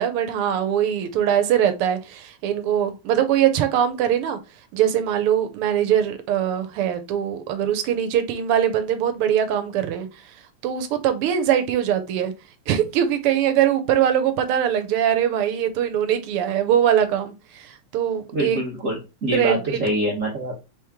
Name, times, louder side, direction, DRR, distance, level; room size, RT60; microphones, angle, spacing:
voice 1, 0.0-4.4 4.7-10.1 10.6-12.3 12.7-18.6 19.3-19.8, right 10 dB, 90° right, 1.6 m, -22 dB
voice 2, 18.3-20.6, equal, 45° right, 1.3 m, -25 dB
4.8 x 3.1 x 3.5 m
omnidirectional pair, 2.4 m